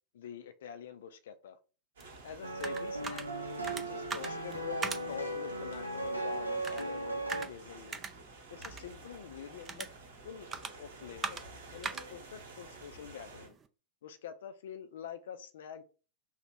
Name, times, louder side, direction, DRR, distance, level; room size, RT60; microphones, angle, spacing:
voice 1, 0.1-1.6 2.2-3.3 3.7-8.0 8.5-9.9 10.2-10.5 10.7-11.4 11.7-13.6 14.0-15.8, left 8 dB, 60° left, 0.3 m, -46 dB
sound 1, 2.0-13.7, right 5 dB, 20° right, 0.4 m, -44 dB
sound 2, 2.0-13.5, right 2 dB, 65° right, 1.0 m, -52 dB
sound 3, 2.4-7.5, right 1 dB, 85° right, 0.5 m, -37 dB
3.0 x 2.1 x 4.1 m
figure-of-eight pair, 90°, 0 cm